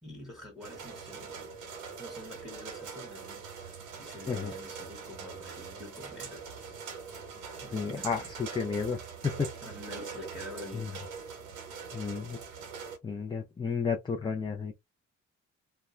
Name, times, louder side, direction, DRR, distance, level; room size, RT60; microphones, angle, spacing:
voice 1, 0.0-1.5 2.0-6.5 7.1-7.2 7.6-8.3 9.6-11.0, left 1 dB, ahead, 1.3 m, -47 dB
sound 1, 0.6-13.0, right 6 dB, 90° right, 0.8 m, -43 dB
voice 2, 7.7-9.5 10.7-10.9 11.9-12.4 13.0-14.8, left 5 dB, 15° left, 0.4 m, -32 dB
2.2 x 2.1 x 3.1 m
cardioid pair, 90°, 30 cm